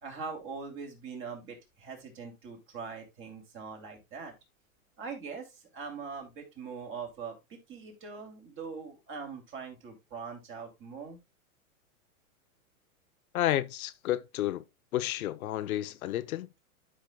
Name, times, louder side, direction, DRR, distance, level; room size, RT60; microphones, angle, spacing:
voice 1, 0.0-4.3 5.0-11.2, right 5 dB, 30° right, 2.6 m, -42 dB
voice 2, 13.3-14.6 14.9-16.5, left 13 dB, 75° left, 0.7 m, -31 dB
12.0 x 5.6 x 2.2 m
hypercardioid pair, 140°, 43 cm